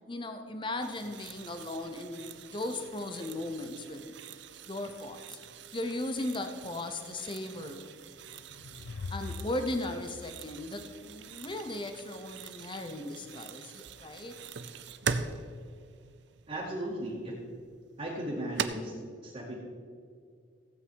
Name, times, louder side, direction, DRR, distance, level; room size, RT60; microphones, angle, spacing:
voice 1, 0.1-4.1 4.7-5.4 5.7-7.9 9.1-14.4, left 2 dB, 25° left, 7 dB, 0.7 m, -37 dB
sound 1, 0.8-18.6, right 6 dB, 60° right, 0.6 m, -43 dB
sound 2, 8.1-11.5, left 3 dB, 70° left, 0.5 m, -43 dB
voice 2, 16.5-17.3 18.0-18.9 19.2-19.6, right 1 dB, 30° right, -8 dB, 2.1 m, -36 dB
16.0 x 8.4 x 4.7 m, 2.2 s
head